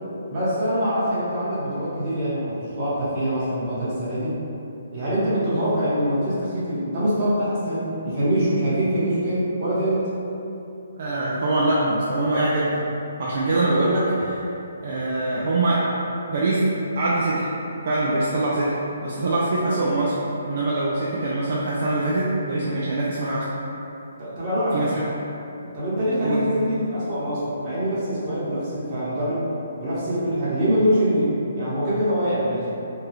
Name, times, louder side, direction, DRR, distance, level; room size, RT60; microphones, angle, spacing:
voice 1, 0.3-4.3 4.9-10.1 24.2-24.9 25.7-29.4 29.8-32.7, equal, 30° right, -11 dB, 1.2 m, -24 dB
voice 2, 10.9-12.8 13.2-14.4 14.8-15.8 16.3-16.7 17.0-17.5 17.8-18.7 19.0-20.1 20.4-23.5 24.7-25.1 26.2-26.4, right 2 dB, 55° right, -7 dB, 0.4 m, -23 dB
2.7 x 2.3 x 3.2 m, 2.8 s
figure-of-eight pair, 140°, 0 cm